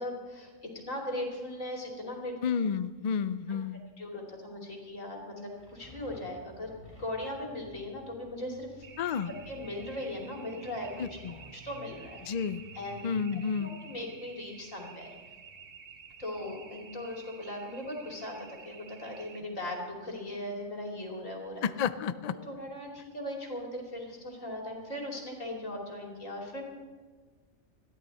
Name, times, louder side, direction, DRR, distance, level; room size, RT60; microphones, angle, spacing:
voice 1, 0.0-2.4 3.5-3.6 4.0-6.7 7.0-8.9 9.5-10.9 11.3-12.2 12.7-13.1 13.6-15.1 16.2-21.6 22.5-26.6, left 1 dB, 75° left, 0 dB, 3.2 m, -38 dB
voice 2, 2.4-3.8 9.0-9.3 11.0-11.4 12.2-12.6 13.0-13.7 21.6-22.3, left 6 dB, 55° left, 13 dB, 0.4 m, -31 dB
sound 1, 5.3-15.7, equal, 35° left, 6.6 m, -54 dB
sound 2, 8.8-19.4, right 6 dB, 50° right, 1.0 m, -52 dB
21.5 x 14.0 x 4.2 m, 1.5 s
omnidirectional pair, 1.3 m